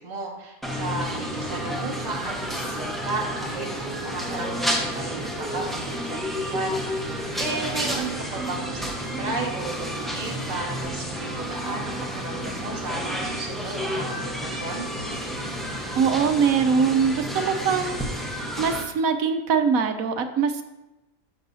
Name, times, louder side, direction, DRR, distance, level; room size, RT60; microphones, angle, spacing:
voice 1, 0.0-6.8 7.4-14.9, right 3 dB, 30° right, -2 dB, 1.5 m, -34 dB
sound 1, 0.6-18.8, equal, ahead, 0.7 m, -30 dB
voice 2, 15.9-20.7, right 6 dB, 75° right, 8 dB, 1.1 m, -23 dB
11.5 x 6.7 x 2.7 m, 1.0 s
omnidirectional pair, 1.5 m